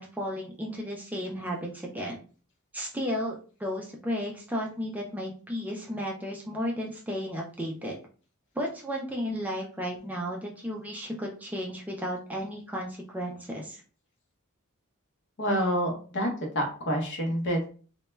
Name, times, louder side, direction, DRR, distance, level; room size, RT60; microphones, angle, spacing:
voice 1, 0.0-2.2 2.7-8.0 8.6-13.8, equal, 5° right, -1 dB, 0.3 m, -34 dB
voice 2, 15.4-16.3 16.5-17.7, equal, 55° left, 1 dB, 0.8 m, -27 dB
2.1 x 2.1 x 3.1 m, 0.39 s
head